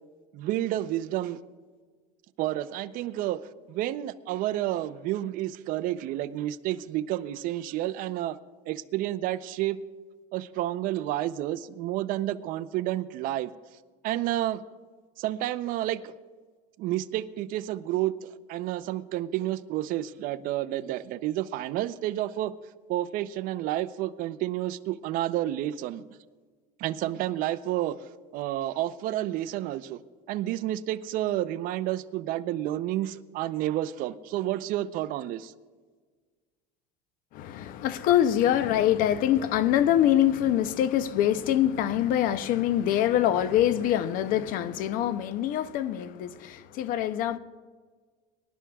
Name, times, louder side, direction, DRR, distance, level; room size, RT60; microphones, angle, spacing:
voice 1, 0.3-1.4 2.4-3.4 3.7-8.4 8.7-9.8 10.3-13.5 14.0-14.6 15.2-16.2 16.8-22.5 22.9-26.2 26.8-30.0 30.3-35.5, right 14 dB, 50° right, 0.6 m, -30 dB
voice 2, 37.3-47.4, left 11 dB, 50° left, 0.6 m, -24 dB
23.0 x 11.0 x 2.3 m
cardioid pair, 145°, 18 cm